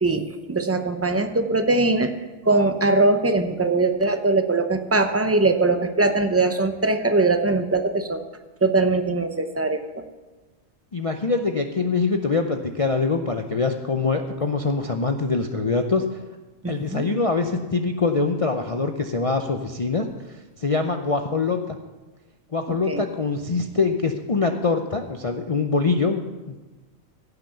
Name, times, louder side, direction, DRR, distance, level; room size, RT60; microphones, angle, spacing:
voice 1, 0.0-2.1 2.4-8.2 8.6-10.0 16.6-17.0 22.7-23.0, right 3 dB, 20° right, 7 dB, 0.4 m, -21 dB
voice 2, 10.9-16.1 16.7-20.1 20.6-21.8 22.5-26.6, left 4 dB, 50° left, 4 dB, 0.4 m, -24 dB
15.5 x 5.9 x 6.8 m, 1.2 s
omnidirectional pair, 1.5 m